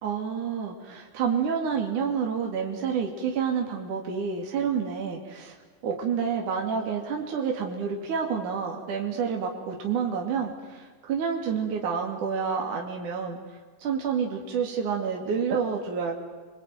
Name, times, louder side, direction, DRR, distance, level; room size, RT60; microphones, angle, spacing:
voice 1, 0.0-5.5 5.8-13.4 13.8-16.2, right 6 dB, 70° right, 1 dB, 4.2 m, -29 dB
29.0 x 22.0 x 9.4 m, 1.5 s
omnidirectional pair, 3.7 m